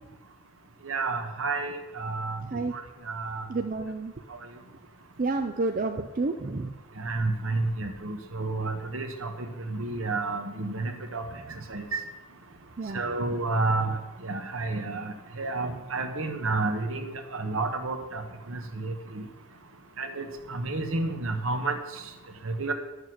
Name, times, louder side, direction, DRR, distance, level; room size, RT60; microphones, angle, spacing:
voice 1, 0.8-2.4 2.7-2.8 3.1-3.5 7.0-11.2 11.7-12.0 12.9-14.0 14.2-18.2 18.5-19.2 20.0-21.8 22.4-22.7, right 3 dB, 65° right, 6 dB, 1.2 m, -30 dB
voice 2, 3.5-4.1 5.2-6.7 12.8-13.0, right 3 dB, 40° right, 5 dB, 0.5 m, -29 dB
11.0 x 6.6 x 6.4 m, 1.1 s
head